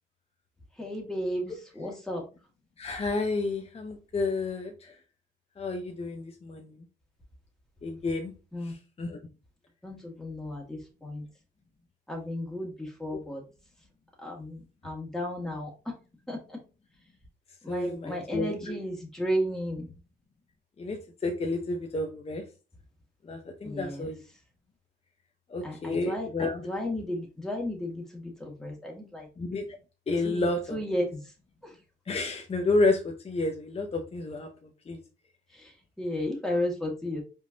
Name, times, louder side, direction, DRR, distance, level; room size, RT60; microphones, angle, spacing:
voice 1, 0.8-2.2 8.5-8.7 9.8-11.2 12.1-12.7 13.0-13.4 14.2-14.6 14.8-15.7 16.3-16.4 17.6-19.9 23.6-24.1 25.6-26.3 26.7-28.0 28.4-29.3 30.2-30.5 30.7-31.0 36.0-37.2, equal, 5° left, -1 dB, 1.9 m, -33 dB
voice 2, 2.8-4.7 5.6-6.7 7.8-8.3 9.0-9.2 13.1-13.2 17.7-18.8 20.8-21.0 21.2-22.4 23.3-24.1 25.5-26.6 29.4-29.6 30.1-30.8 32.1-34.5 34.9-35.0, left 2 dB, 30° left, 3 dB, 0.8 m, -30 dB
5.1 x 3.7 x 2.8 m, 0.32 s
cardioid pair, 90°, 20 cm